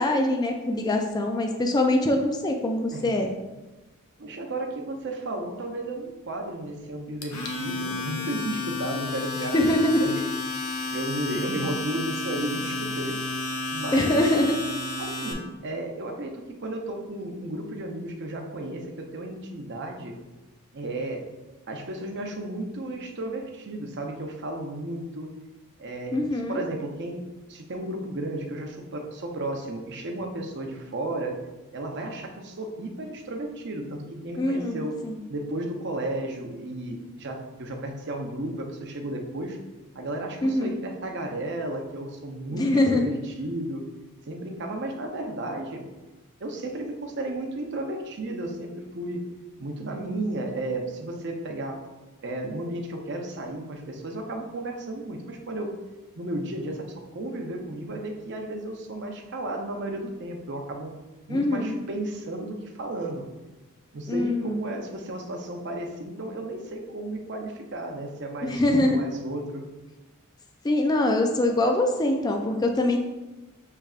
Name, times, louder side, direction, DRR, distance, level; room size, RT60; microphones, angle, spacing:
voice 1, 0.0-3.3 9.5-10.0 13.9-14.5 26.1-26.6 34.4-35.2 40.4-40.8 42.5-43.1 61.3-61.8 64.1-64.6 68.4-69.0 70.6-73.0, left 1 dB, 20° left, 3 dB, 0.3 m, -23 dB
voice 2, 4.2-10.2 10.9-13.2 13.7-14.3 15.0-20.1 20.7-21.3 21.7-25.3 25.8-31.4 31.7-35.0 35.3-39.6 39.9-43.8 44.3-45.8 46.4-49.3 49.6-51.8 52.2-55.8 56.2-56.9 57.1-60.9 61.3-63.2 63.9-69.7, right 1 dB, 55° right, 2 dB, 0.7 m, -33 dB
Domestic sounds home sounds, 7.2-15.3, left 3 dB, 75° left, 0.7 m, -31 dB
6.6 x 3.2 x 2.4 m, 1.1 s
head